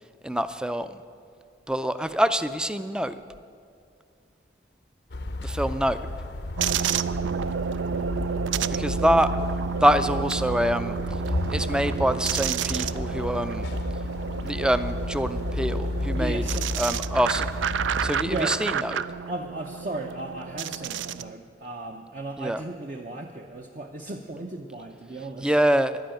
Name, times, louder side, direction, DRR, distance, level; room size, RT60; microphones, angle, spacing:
voice 1, 0.2-0.9 1.7-3.1 5.4-6.0 8.7-9.3 9.8-11.0 11.5-13.7 14.4-16.4 16.8-17.5 18.0-19.0 22.4-22.6 25.4-26.1, equal, 5° right, 12 dB, 0.4 m, -25 dB
sound 1, 5.1-18.3, left 2 dB, 60° left, 0.6 m, -32 dB
sound 2, 6.6-21.3, right 7 dB, 80° right, 0.4 m, -30 dB
voice 2, 16.1-16.7 18.2-18.6 19.3-25.5, right 2 dB, 40° right, 3 dB, 0.7 m, -35 dB
11.5 x 10.5 x 9.0 m, 2.4 s
head